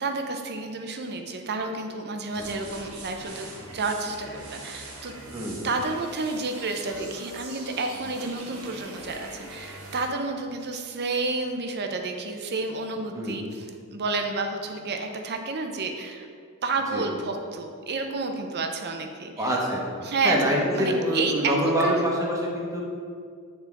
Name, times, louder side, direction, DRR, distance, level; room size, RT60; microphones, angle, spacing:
voice 1, 0.0-5.1 5.6-16.3 16.6-19.5 20.0-22.0, right 3 dB, 50° right, 4 dB, 0.6 m, -30 dB
sound 1, 2.3-10.1, right 2 dB, 80° right, 1.5 m, -42 dB
voice 2, 5.3-5.7 13.1-13.4 16.9-17.0 19.4-19.8 20.2-22.8, equal, 15° right, -3 dB, 1.1 m, -25 dB
9.0 x 4.4 x 3.5 m, 2.2 s
head